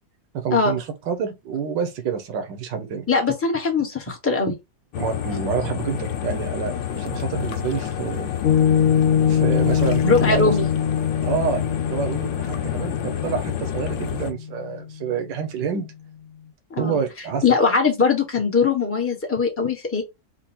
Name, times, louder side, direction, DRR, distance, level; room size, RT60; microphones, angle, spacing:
voice 1, 0.3-3.1 5.0-8.3 9.2-10.5 11.2-11.6 11.9-15.9 16.8-17.4, right 6 dB, 70° right, 1.7 m, -28 dB
voice 2, 3.1-4.5 10.0-10.7 16.7-17.0 17.4-20.0, left 4 dB, 10° left, 1.1 m, -21 dB
sound 1, 4.9-14.3, left 9 dB, 75° left, 1.4 m, -29 dB
Piano, 8.4-15.1, left 9 dB, 55° left, 1.0 m, -23 dB
4.5 x 2.5 x 4.3 m
omnidirectional pair, 2.0 m